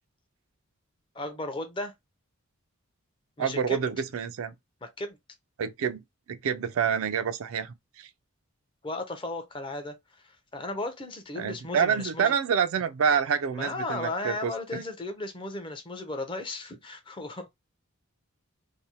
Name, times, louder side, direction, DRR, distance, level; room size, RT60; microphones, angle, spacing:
voice 1, 1.1-1.9 3.4-3.8 4.8-5.2 8.8-12.3 13.5-17.5, left 2 dB, 20° left, 0.5 m, -35 dB
voice 2, 3.4-4.5 5.6-6.0 6.3-8.1 11.4-14.5, right 7 dB, 65° right, 0.3 m, -27 dB
2.6 x 2.1 x 2.7 m
head